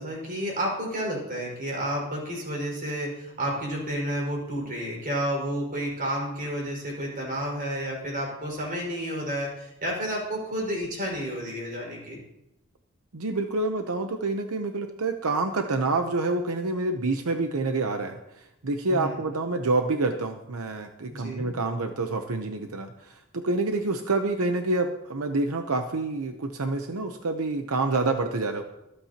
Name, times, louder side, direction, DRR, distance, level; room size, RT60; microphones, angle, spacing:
voice 1, 0.0-12.2 18.9-19.2 21.1-21.5, equal, 40° right, -2 dB, 5.4 m, -31 dB
voice 2, 13.1-28.6, right 3 dB, 85° right, 6 dB, 0.9 m, -27 dB
25.5 x 8.7 x 2.9 m, 0.88 s
head